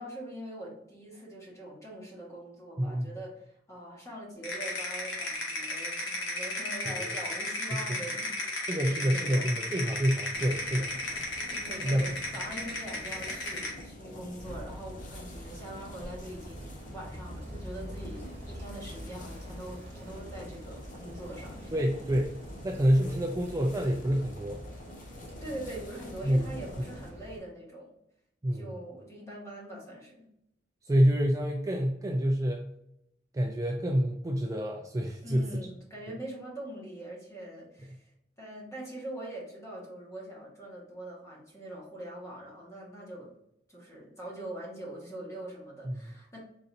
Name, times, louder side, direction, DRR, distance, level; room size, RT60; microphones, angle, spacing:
voice 1, 0.0-8.6 8.9-9.6 11.5-21.8 25.4-27.9 28.5-30.3 35.2-38.1 38.4-43.3 43.7-46.4, right 1 dB, 15° left, -3 dB, 1.4 m, -43 dB
voice 2, 2.8-3.2 6.9-7.1 7.7-7.8 8.7-10.9 11.8-12.0 21.7-22.4 22.6-24.6 26.2-26.5 28.4-28.7 30.8-32.7 33.3-35.5 45.9-46.0, equal, 20° right, 1 dB, 0.4 m, -27 dB
sound 1, 4.4-13.8, left 2 dB, 85° left, 1.3 m, -34 dB
sound 2, 10.3-27.1, left 1 dB, 45° left, 0.8 m, -47 dB
sound 3, 14.4-27.4, right 1 dB, 35° right, 1.1 m, -46 dB
4.0 x 3.9 x 2.5 m, 0.80 s
head